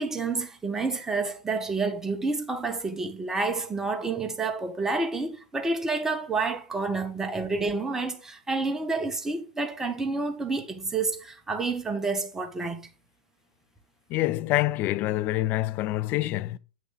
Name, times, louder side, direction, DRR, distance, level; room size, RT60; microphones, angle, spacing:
voice 1, 0.0-12.8, right 3 dB, 10° right, 1.5 m, -29 dB
voice 2, 14.1-16.6, left 16 dB, 40° left, 0.5 m, -26 dB
8.2 x 6.3 x 3.9 m
hypercardioid pair, 110°, 5 cm